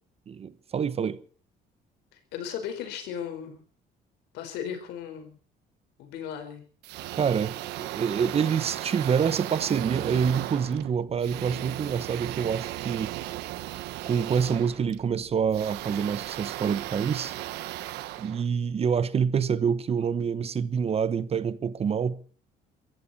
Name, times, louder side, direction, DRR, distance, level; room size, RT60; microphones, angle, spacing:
voice 1, 0.3-1.2 7.1-13.2 14.0-17.4 18.2-22.2, right 7 dB, 35° right, 1.0 m, -27 dB
voice 2, 2.3-3.6 4.3-5.4 6.0-6.7, left 8 dB, 90° left, 4.5 m, -36 dB
sound 1, 6.8-19.0, right 15 dB, 90° right, 1.1 m, -36 dB
sound 2, 11.0-18.7, right 6 dB, 55° right, 6.9 m, -56 dB
23.0 x 14.5 x 4.2 m
cardioid pair, 110°, 17 cm